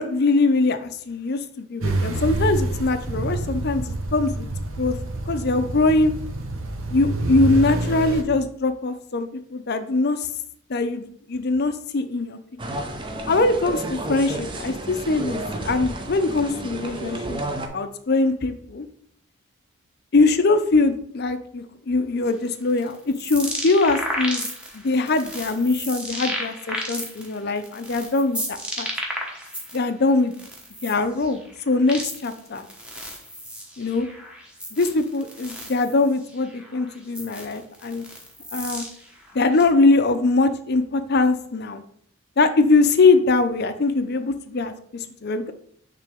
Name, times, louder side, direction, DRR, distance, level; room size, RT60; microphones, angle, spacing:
voice 1, 0.0-4.5 4.8-4.9 5.3-6.1 6.9-10.3 10.7-12.4 13.3-17.4 17.7-18.9 20.1-24.5 24.7-28.9 29.7-30.3 30.8-32.6 33.8-34.1 34.7-38.1 38.5-38.8 39.3-41.8 42.4-45.5, left 3 dB, 50° left, 9 dB, 0.5 m, -22 dB
sound 1, 1.8-8.2, right 2 dB, 75° right, 0.8 m, -27 dB
sound 2, 12.6-17.7, right 1 dB, 20° right, 0.6 m, -31 dB
sound 3, 22.3-29.8 30.2-39.6, equal, 5° right, 0.9 m, -33 dB
9.0 x 3.4 x 3.5 m, 0.65 s
head